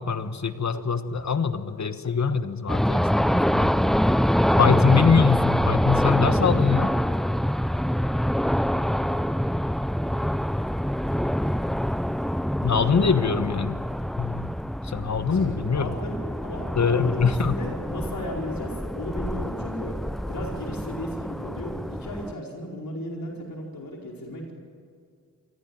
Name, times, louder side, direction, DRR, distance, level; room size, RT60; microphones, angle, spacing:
voice 1, 0.0-3.0 3.6-3.7 4.6-6.9 12.6-13.8 14.2-14.5 14.8-15.9 16.7-17.6, left 6 dB, 50° left, 11 dB, 1.4 m, -23 dB
sound 1, 2.7-22.3, equal, ahead, 0.5 m, -25 dB
voice 2, 15.3-19.9 20.3-24.5, left 1 dB, 70° left, -1 dB, 4.8 m, -35 dB
25.0 x 15.0 x 9.1 m, 2.2 s
cardioid pair, 55°, 35 cm